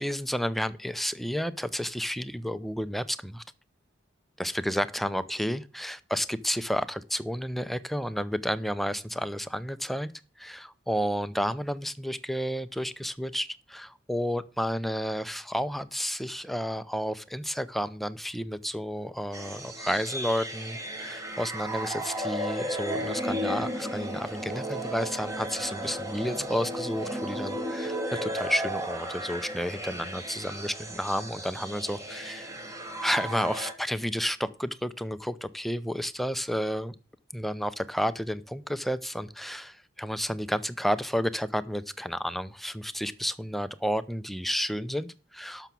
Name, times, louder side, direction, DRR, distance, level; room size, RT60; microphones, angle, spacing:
voice 1, 0.0-3.4 4.4-10.1 10.4-32.5 33.0-36.9 37.3-45.7, equal, ahead, 13 dB, 0.6 m, -31 dB
sound 1, 19.3-33.7, equal, 15° right, 1.7 m, -34 dB
12.0 x 6.0 x 7.0 m, 0.36 s
head